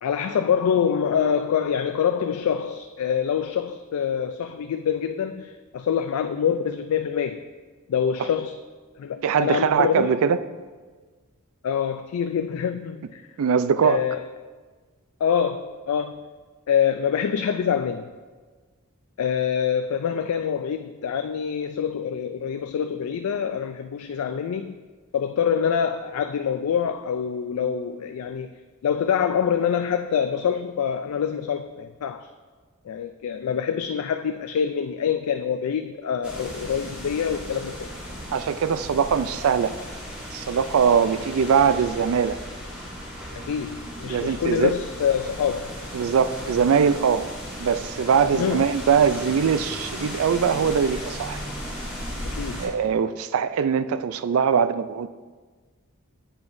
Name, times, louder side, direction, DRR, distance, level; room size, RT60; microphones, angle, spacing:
voice 1, 0.0-7.5 7.9-8.6 9.0-10.1 11.6-13.2 13.8-14.3 15.2-16.3 16.7-18.1 19.2-24.8 25.1-32.3 32.9-37.9 43.5-45.8 48.3-48.7 52.3-52.8, left 7 dB, 85° left, 8 dB, 0.3 m, -25 dB
voice 2, 9.2-10.4 13.4-14.0 38.3-39.7 40.3-42.4 44.1-44.7 45.9-47.3 47.6-51.4 52.6-55.1, right 6 dB, 70° right, 14 dB, 0.4 m, -21 dB
sound 1, 36.2-52.7, equal, 5° right, 2.8 m, -36 dB
10.5 x 7.9 x 2.6 m, 1.4 s
head